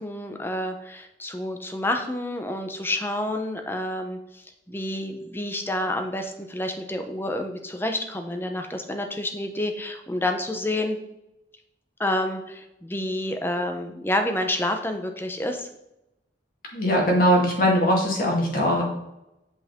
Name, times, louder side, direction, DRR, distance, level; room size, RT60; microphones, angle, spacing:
voice 1, 0.0-11.0 12.0-15.7, left 1 dB, 10° left, 5 dB, 0.7 m, -29 dB
voice 2, 16.7-18.8, equal, 50° left, -2 dB, 2.1 m, -20 dB
8.1 x 5.4 x 3.7 m, 0.88 s
head